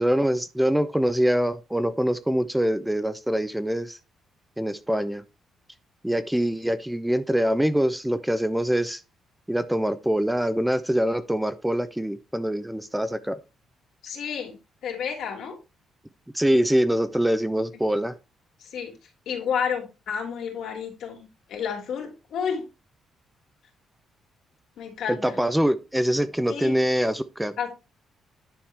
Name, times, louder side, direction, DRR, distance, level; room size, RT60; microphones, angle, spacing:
voice 1, 0.0-4.0 4.6-5.2 6.0-9.0 9.5-13.4 16.3-18.1 25.1-27.5, equal, 5° right, 0.6 m, -24 dB
voice 2, 14.0-14.6 14.8-15.6 17.7-17.8 18.6-18.9 19.3-22.6 24.8-25.4 26.5-26.7 27.6-27.7, left 7 dB, 75° left, 2.7 m, -31 dB
10.0 x 4.8 x 3.4 m
cardioid pair, 90°, 0 cm